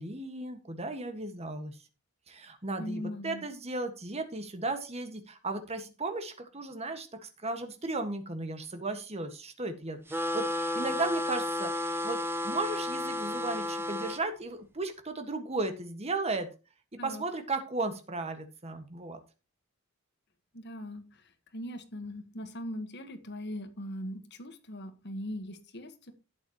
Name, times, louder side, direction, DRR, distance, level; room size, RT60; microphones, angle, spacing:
voice 1, 0.0-1.8 2.3-16.5 17.0-19.2, right 2 dB, 30° right, 7 dB, 1.6 m, -35 dB
voice 2, 2.8-3.4 17.0-17.2 20.5-21.2 21.5-26.1, equal, 55° left, 9 dB, 1.5 m, -40 dB
sound 1, 10.1-14.2, left 1 dB, 10° right, 0.8 m, -32 dB
11.5 x 8.5 x 3.0 m, 0.31 s
head